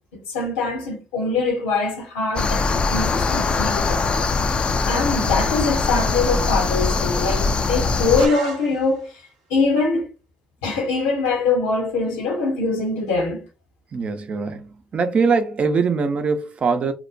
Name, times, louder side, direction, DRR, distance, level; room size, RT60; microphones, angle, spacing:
voice 1, 0.1-4.3 4.9-9.1 9.5-10.1 10.6-13.4, left 3 dB, 85° left, 1.0 m, -23 dB
sound 1, 2.4-8.3, left 4 dB, 40° left, 0.4 m, -22 dB
sound 2, 8.2-9.3, right 4 dB, 85° right, 0.8 m, -36 dB
voice 2, 13.9-16.9, right 5 dB, 45° right, 0.6 m, -22 dB
2.9 x 2.1 x 2.6 m
hypercardioid pair, 60°, 3 cm